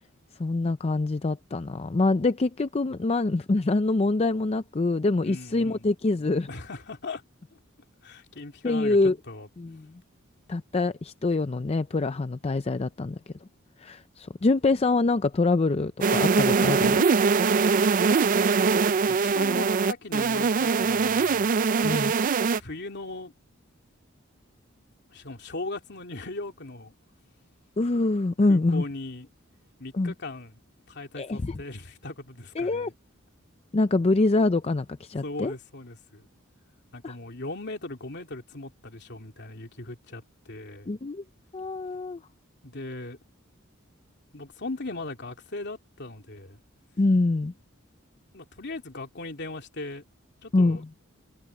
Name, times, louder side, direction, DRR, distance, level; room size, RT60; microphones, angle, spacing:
voice 1, 0.4-6.5 8.6-9.2 9.6-9.9 10.5-13.2 13.8-17.1 21.8-22.1 27.8-28.8 29.9-30.1 31.2-31.6 32.6-32.9 33.7-35.5 37.0-37.1 40.9-41.2 41.5-42.2 47.0-47.5 50.5-50.9, left 2 dB, 30° left, 0.5 m, -25 dB
voice 2, 5.2-5.9 6.5-7.2 7.5-7.6 8.0-9.5 17.6-18.4 19.1-21.5 22.5-23.3 25.1-26.9 28.5-29.3 29.8-30.6 30.9-32.9 35.2-36.3 36.9-40.9 42.6-43.2 44.3-46.6 48.3-50.0 50.4-50.8, left 2 dB, 55° left, 2.9 m, -39 dB
sound 1, 16.0-22.6, right 5 dB, 40° right, 0.4 m, -22 dB
head